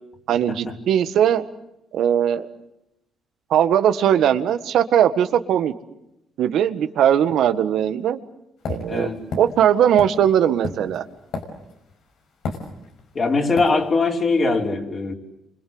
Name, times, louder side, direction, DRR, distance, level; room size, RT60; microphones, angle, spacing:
voice 1, 0.3-1.4 1.9-2.5 3.5-5.7 6.4-8.2 8.7-9.1 9.4-11.0, right 9 dB, 75° right, 10 dB, 1.7 m, -19 dB
sound 1, 8.7-11.9 12.4-13.1 13.6-13.8, left 4 dB, 75° left, 5.7 m, -31 dB
voice 2, 8.9-9.2 13.2-15.1, left 3 dB, 40° left, 2 dB, 5.2 m, -21 dB
29.5 x 25.5 x 8.0 m, 0.87 s
cardioid pair, 90°, 0 cm